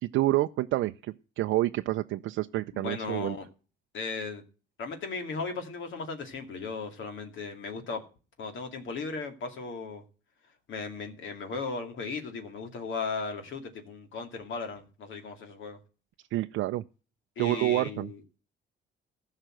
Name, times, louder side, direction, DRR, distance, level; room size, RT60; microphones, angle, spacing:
voice 1, 0.0-3.4 16.3-16.8 17.4-18.1, right 16 dB, 85° right, 0.5 m, -28 dB
voice 2, 2.7-3.5 3.9-4.4 4.8-8.0 8.4-10.0 10.7-15.8 17.4-18.2, left 4 dB, 75° left, 2.4 m, -36 dB
14.5 x 5.7 x 7.6 m
cardioid pair, 90°, 20 cm